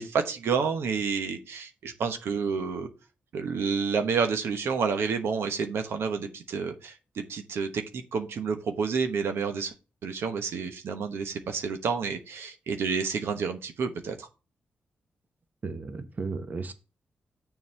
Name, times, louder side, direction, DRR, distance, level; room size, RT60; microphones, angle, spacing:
voice 1, 0.0-2.9 3.3-9.7 10.0-14.3, right 5 dB, 80° right, 6 dB, 1.1 m, -29 dB
voice 2, 15.6-16.7, right 4 dB, 45° right, 9 dB, 1.1 m, -34 dB
7.1 x 4.0 x 6.5 m, 0.31 s
cardioid pair, 85°, 4 cm